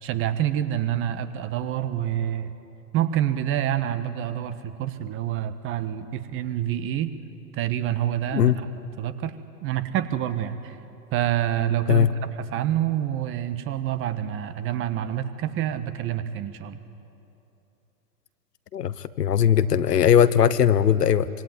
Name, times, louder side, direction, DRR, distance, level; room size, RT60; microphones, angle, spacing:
voice 1, 0.0-2.5 2.9-7.1 7.5-8.7 9.0-9.3 9.6-10.8 11.1-12.1 12.4-16.8, right 11 dB, 25° right, 11 dB, 1.4 m, -27 dB
voice 2, 18.7-21.3, left 9 dB, 70° left, 14 dB, 1.2 m, -19 dB
26.0 x 24.0 x 9.3 m, 2.8 s
figure-of-eight pair, 115°, 49 cm